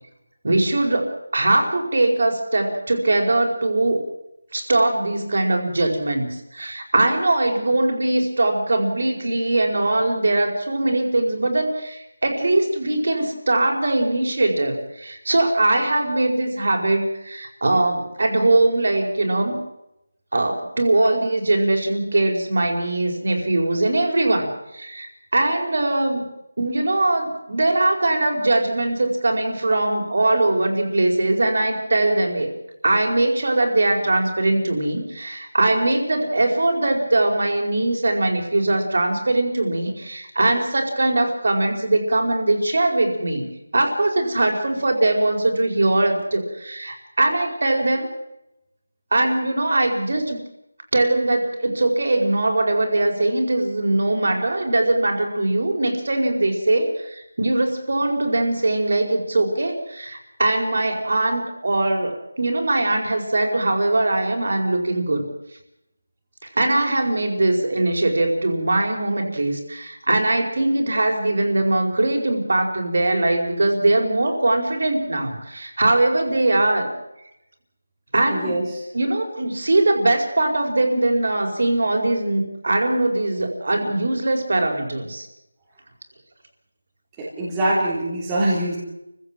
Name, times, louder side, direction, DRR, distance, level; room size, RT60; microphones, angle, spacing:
voice 1, 0.4-4.0 4.5-19.6 20.3-26.2 26.6-32.5 32.8-43.4 43.7-48.1 49.1-50.4 50.9-65.2 66.4-76.9 78.1-78.6 78.9-85.3, right 2 dB, 50° right, 3 dB, 4.8 m, -21 dB
voice 2, 78.3-78.8 87.2-88.8, right 1 dB, 10° right, -7 dB, 3.5 m, -23 dB
29.0 x 16.0 x 7.5 m, 0.88 s
figure-of-eight pair, 180°, 0 cm